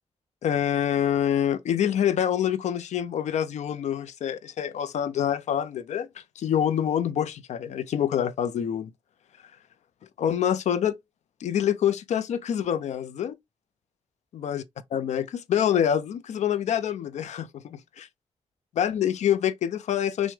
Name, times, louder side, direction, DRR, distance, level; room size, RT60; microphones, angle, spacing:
voice 1, 0.4-8.9 10.2-11.0 11.4-13.3 14.3-14.6 14.9-18.1 18.7-20.3, left 9 dB, 90° left, 0.6 m, -26 dB
6.1 x 2.2 x 3.4 m
wide cardioid pair, 125°, 12 cm